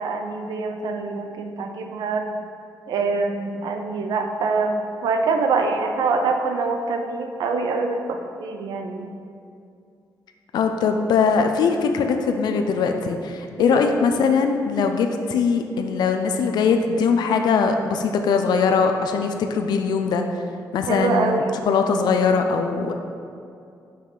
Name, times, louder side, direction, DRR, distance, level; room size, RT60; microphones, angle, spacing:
voice 1, 0.0-2.3 2.9-9.1 13.6-14.0 20.9-21.6, right 4 dB, 90° right, 4 dB, 0.7 m, -25 dB
voice 2, 10.5-20.2 20.7-23.0, left 5 dB, 80° left, 5 dB, 0.5 m, -21 dB
5.7 x 5.6 x 4.9 m, 2.5 s
wide cardioid pair, 150°, 7 cm